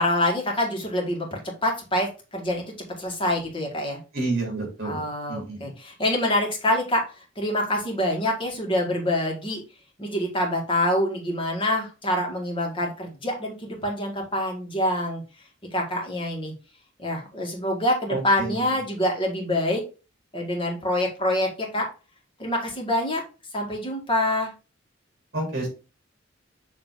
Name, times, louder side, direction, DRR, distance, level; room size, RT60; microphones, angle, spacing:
voice 1, 0.0-2.6 3.0-4.0 4.8-7.0 7.4-9.6 10.0-15.2 15.7-16.5 17.0-19.8 20.3-21.9 22.4-23.2 23.5-24.5, left 1 dB, 25° left, 0 dB, 1.9 m, -26 dB
voice 2, 4.1-5.7 18.1-18.7 25.3-25.7, right 2 dB, 55° right, 1 dB, 3.1 m, -30 dB
7.3 x 3.4 x 3.9 m, 0.32 s
head